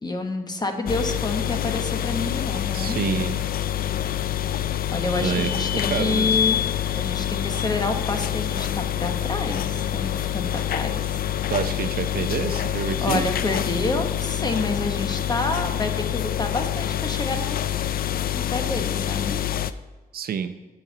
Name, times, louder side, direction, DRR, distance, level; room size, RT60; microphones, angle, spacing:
voice 1, 0.0-3.0 4.9-6.6 6.9-11.2 13.0-17.6 18.3-19.4, left 2 dB, 25° left, 5 dB, 1.2 m, -28 dB
sound 1, 0.9-19.7, left 11 dB, 65° left, 0.4 m, -26 dB
voice 2, 2.7-3.5 5.2-6.4 11.5-13.2 20.1-20.5, right 7 dB, 70° right, 10 dB, 0.6 m, -28 dB
15.5 x 5.4 x 4.0 m, 1.3 s
cardioid pair, 115°, 16 cm